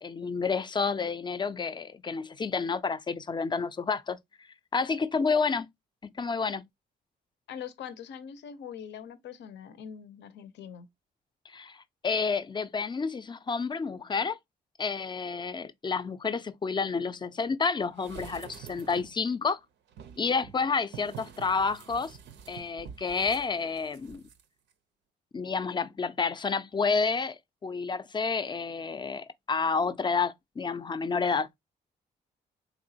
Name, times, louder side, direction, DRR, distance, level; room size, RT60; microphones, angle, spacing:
voice 1, 0.0-4.2 4.7-5.7 6.0-6.6 11.5-14.4 14.8-19.6 20.2-22.2 22.5-24.2 25.3-31.5, left 5 dB, 25° left, 0.4 m, -30 dB
voice 2, 7.5-10.9, left 8 dB, 75° left, 0.6 m, -43 dB
sound 1, 18.0-19.2 19.9-24.4 24.7-24.8, right 8 dB, 80° right, 0.5 m, -47 dB
3.5 x 2.9 x 2.7 m
supercardioid pair, 65°, 19 cm